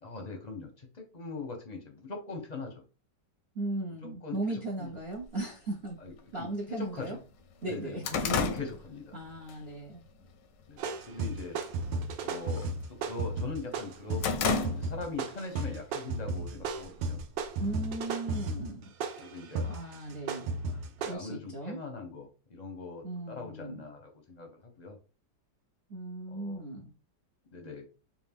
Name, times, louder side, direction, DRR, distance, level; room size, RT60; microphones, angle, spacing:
voice 1, 0.0-2.7 4.0-4.9 6.0-7.2 7.6-9.1 10.7-11.6 12.2-17.2 19.2-19.8 20.7-25.0 26.3-26.6 27.5-27.8, left 3 dB, 40° left, 3 dB, 0.6 m, -41 dB
voice 2, 3.5-6.0 6.3-7.2 7.6-8.0 9.1-10.0 17.6-18.9 19.7-20.6 21.1-21.8 23.0-23.8 25.9-26.9, right 2 dB, 55° right, 0 dB, 0.7 m, -37 dB
sound 1, 5.2-5.3 6.2-6.3 6.7-6.8 7.2-9.6 10.0-10.3 10.7-11.2 11.5-11.8 12.1-13.3 13.7-15.2 15.6-15.7 16.6-17.5, left 5 dB, 85° left, 1.3 m, -33 dB
sound 2, 10.8-21.1, right 3 dB, 85° right, 1.3 m, -34 dB
4.6 x 2.5 x 3.4 m, 0.34 s
omnidirectional pair, 1.9 m